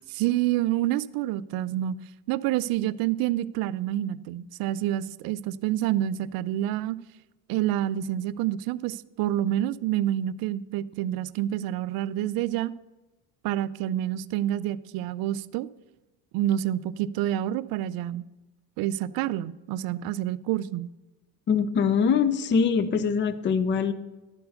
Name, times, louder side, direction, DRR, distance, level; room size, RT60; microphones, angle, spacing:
voice 1, 0.1-2.0 2.3-7.0 7.5-12.7 13.4-15.7 16.3-18.3 18.8-20.9, right 13 dB, 60° right, 16 dB, 0.5 m, -28 dB
voice 2, 21.5-23.9, left 6 dB, 30° left, 13 dB, 0.5 m, -23 dB
11.5 x 4.6 x 6.5 m, 1.1 s
supercardioid pair, 110°, 41 cm